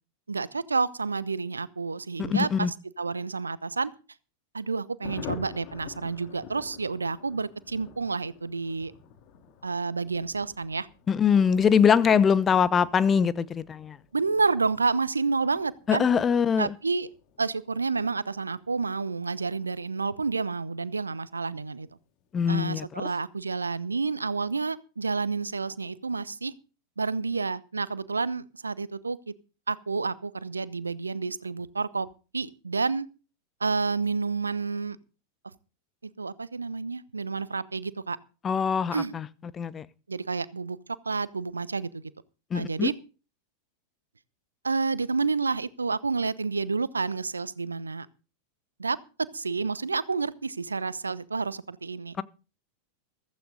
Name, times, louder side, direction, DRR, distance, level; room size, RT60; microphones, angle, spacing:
voice 1, 0.3-3.9 4.5-8.9 9.6-10.9 12.0-12.2 14.1-16.1 16.6-17.1 17.4-21.9 22.5-26.5 27.0-29.3 29.7-32.1 32.3-33.1 33.6-35.0 36.0-38.2 38.9-39.1 40.1-40.8 41.0-42.0 42.5-42.9 44.6-48.1 48.8-49.0 49.3-52.2, right 4 dB, 75° right, 0.9 m, -29 dB
voice 2, 2.2-2.7 11.1-14.0 15.9-16.7 22.3-22.8 38.4-39.2 39.5-39.9 42.5-42.9, left 7 dB, 20° left, 0.9 m, -23 dB
Thunder, 5.0-21.1 21.4-21.5 21.8-21.9 22.2-22.6, left 7 dB, 40° left, 2.4 m, -48 dB
15.0 x 14.5 x 4.0 m
figure-of-eight pair, 90°, 0 cm